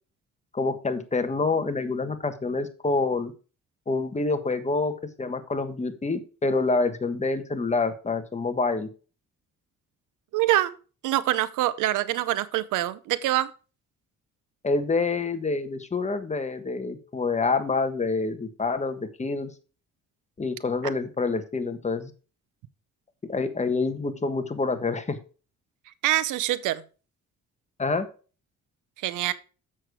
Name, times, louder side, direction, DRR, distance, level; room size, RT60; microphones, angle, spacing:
voice 1, 0.5-3.3 3.9-4.9 5.2-8.9 14.6-19.5 20.4-22.1 23.3-25.2 27.8-28.1, left 3 dB, 25° left, 1.4 m, -27 dB
voice 2, 10.3-10.8 11.0-13.5 26.0-26.8 29.0-29.3, right 14 dB, 90° right, 0.7 m, -25 dB
7.6 x 6.5 x 4.8 m
cardioid pair, 90°, 30 cm